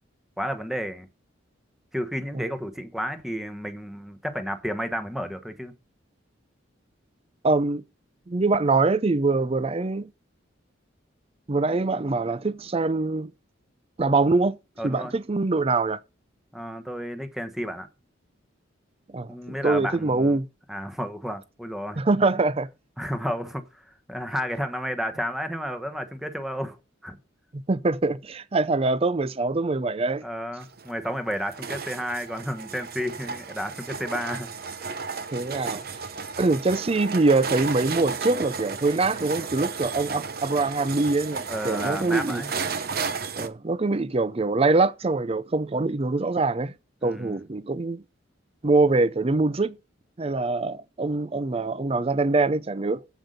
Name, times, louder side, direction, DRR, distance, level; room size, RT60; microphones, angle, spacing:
voice 1, 0.4-1.1 1.9-5.7 14.8-15.1 16.5-17.9 19.3-20.4 20.7-22.0 23.0-26.8 27.0-27.2 30.2-34.5 41.5-42.5 47.0-47.4, equal, ahead, 1.1 m, -32 dB
voice 2, 7.4-7.8 8.3-10.1 11.5-13.3 14.0-14.6 14.8-16.0 19.1-20.5 22.0-22.7 27.5-30.2 35.3-35.8 36.4-42.4 43.4-46.7 47.0-48.0 48.6-49.8 50.2-53.0, right 3 dB, 30° right, 0.5 m, -24 dB
sound 1, 30.6-43.5, right 5 dB, 50° right, 0.9 m, -33 dB
8.0 x 8.0 x 5.1 m
head